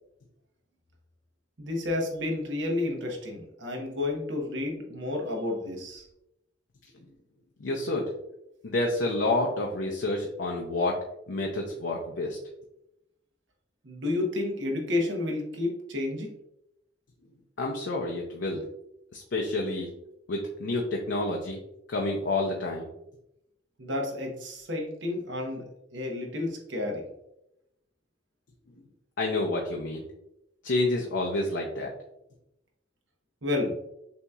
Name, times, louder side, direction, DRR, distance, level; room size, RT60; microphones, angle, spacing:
voice 1, 1.6-6.1 13.8-16.3 23.8-27.0 33.4-33.7, left 2 dB, 75° right, 1 dB, 1.0 m, -31 dB
voice 2, 7.6-8.1 8.6-12.4 17.6-18.6 19.1-19.9 20.3-21.6 21.9-22.9 29.2-30.0 30.6-31.9, left 2 dB, 70° left, 0 dB, 0.5 m, -29 dB
6.8 x 2.8 x 2.3 m, 0.85 s
head